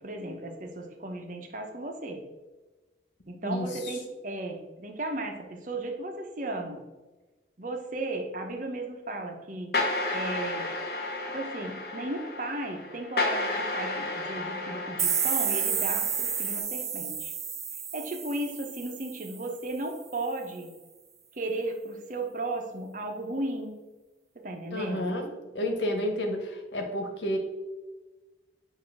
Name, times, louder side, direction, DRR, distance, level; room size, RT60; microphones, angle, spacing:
voice 1, 0.0-2.2 3.3-6.8 7.6-9.8 10.1-10.7 11.3-17.3 17.9-20.7 21.3-23.8 24.3-25.1, right 2 dB, 45° right, 3 dB, 1.0 m, -35 dB
voice 2, 3.4-4.0 24.7-25.3 25.5-27.4, left 1 dB, 90° left, 3 dB, 1.3 m, -30 dB
sound 1, 9.7-16.6, left 2 dB, 60° left, 1.0 m, -32 dB
sound 2, 15.0-19.7, right 7 dB, 15° right, 0.4 m, -31 dB
8.5 x 2.9 x 6.0 m, 1.2 s
head